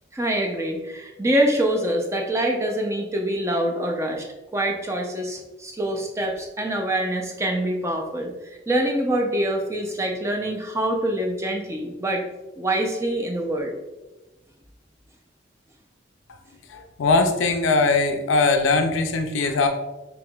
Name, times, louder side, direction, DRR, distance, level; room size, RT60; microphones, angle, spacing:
voice 1, 0.1-4.2 4.5-8.3 8.7-12.2 12.6-13.7, right 1 dB, 15° right, 2 dB, 0.4 m, -25 dB
voice 2, 16.7-19.7, left 3 dB, 90° left, 6 dB, 0.4 m, -21 dB
5.4 x 2.9 x 2.3 m, 1.1 s
head